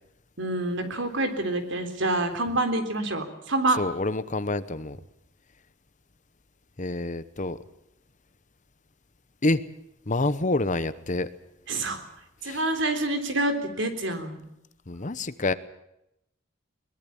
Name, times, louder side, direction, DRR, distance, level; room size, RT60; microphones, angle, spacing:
voice 1, 0.4-3.8 11.7-12.0 12.4-14.5, right 2 dB, 60° right, 7 dB, 3.7 m, -27 dB
voice 2, 3.8-5.0 6.8-7.6 9.4-9.6 10.1-11.3 12.4-12.6 14.9-15.5, left 2 dB, 35° left, 14 dB, 1.0 m, -27 dB
22.5 x 20.5 x 7.2 m, 0.83 s
head